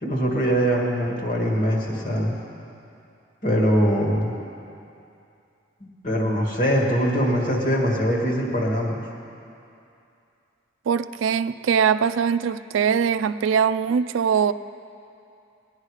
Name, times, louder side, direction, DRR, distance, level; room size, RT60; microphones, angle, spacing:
voice 1, 0.0-2.4 3.4-4.3 5.8-9.0, equal, 45° left, -1 dB, 1.9 m, -22 dB
voice 2, 10.9-14.5, right 7 dB, 85° right, 14 dB, 0.4 m, -22 dB
18.0 x 10.5 x 4.9 m, 2.6 s
head